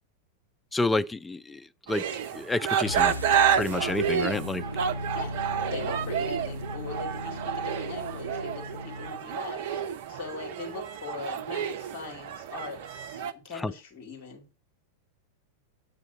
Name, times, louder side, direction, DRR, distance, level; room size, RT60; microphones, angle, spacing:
voice 1, 0.7-2.0 2.3-3.2 3.5-4.6 13.6-13.7, left 2 dB, 10° left, 0.3 m, -29 dB
sound 1, 1.9-13.3, right 8 dB, 50° right, 0.6 m, -30 dB
sound 2, 2.8-9.3, left 1 dB, 90° left, 0.8 m, -37 dB
voice 2, 5.1-9.8 10.1-14.5, left 4 dB, 40° left, 2.5 m, -41 dB
8.0 x 3.9 x 5.8 m
figure-of-eight pair, 90°, 0 cm